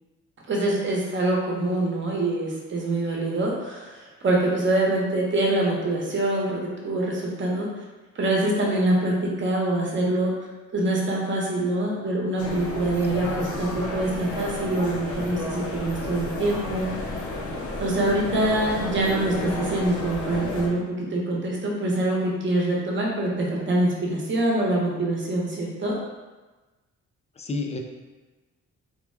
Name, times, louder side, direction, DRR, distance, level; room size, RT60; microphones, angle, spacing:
voice 1, 0.5-7.7 8.1-10.3 10.7-16.9 17.8-26.0, right 1 dB, 40° right, -2 dB, 0.9 m, -25 dB
sound 1, 12.4-20.7, left 2 dB, 50° left, 0.7 m, -32 dB
voice 2, 27.4-27.8, left 3 dB, 20° left, 3 dB, 0.4 m, -31 dB
3.5 x 2.2 x 3.3 m, 1.2 s
cardioid pair, 90°, 30 cm